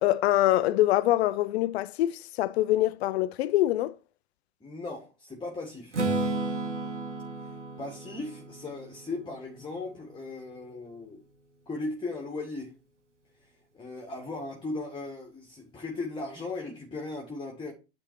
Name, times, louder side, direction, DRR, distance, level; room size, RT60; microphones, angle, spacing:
voice 1, 0.0-3.9, left 15 dB, 65° left, 0.7 m, -24 dB
voice 2, 4.6-6.0 7.4-11.2 11.7-12.7 13.7-17.7, left 3 dB, 15° left, 1.9 m, -37 dB
Strum, 5.9-9.9, right 2 dB, 85° right, 1.9 m, -33 dB
9.9 x 4.1 x 4.7 m
figure-of-eight pair, 85°, 35 cm